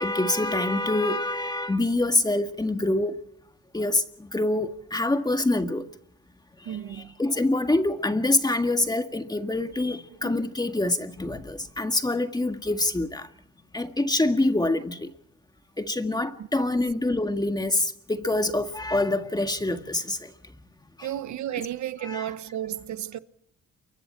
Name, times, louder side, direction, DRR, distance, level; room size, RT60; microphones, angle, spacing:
voice 1, 0.0-3.2 3.7-5.9 6.7-13.3 13.7-15.1 15.8-20.3 21.0-21.1 22.0-22.3, left 2 dB, 15° left, 1.8 m, -26 dB
voice 2, 6.6-7.1 10.1-10.3 16.4-16.6 21.0-23.2, right 11 dB, 70° right, 1.1 m, -33 dB
28.5 x 24.0 x 4.5 m
cardioid pair, 90°, 30 cm